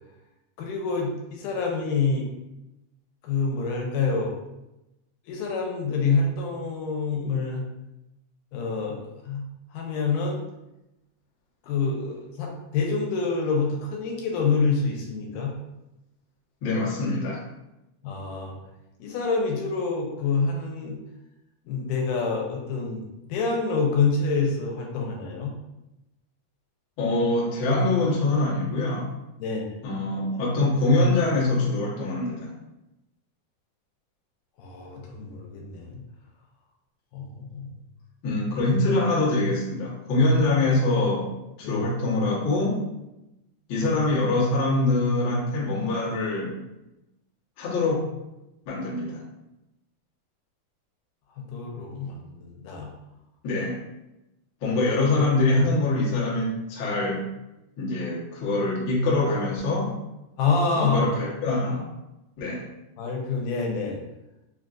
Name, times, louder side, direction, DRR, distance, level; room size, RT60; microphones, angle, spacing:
voice 1, 0.6-2.3 3.2-4.3 5.3-7.6 8.5-9.0 9.3-9.4 9.7-10.4 11.6-15.5 18.0-18.6 19.0-21.0 21.7-23.0 23.3-25.5 29.4-29.6 34.6-36.0 37.1-37.7 41.6-41.9 51.5-52.9 60.4-61.1 63.0-64.0, left 4 dB, 85° left, 0 dB, 2.2 m, -27 dB
voice 2, 16.6-17.4 27.0-29.1 29.8-32.5 38.2-42.8 43.7-46.6 47.6-48.1 48.6-49.2 53.4-53.8 54.6-57.3 57.8-60.0 60.7-61.8 62.4-62.7, left 2 dB, 60° left, -7 dB, 1.3 m, -24 dB
5.2 x 2.5 x 2.4 m, 0.93 s
omnidirectional pair, 3.7 m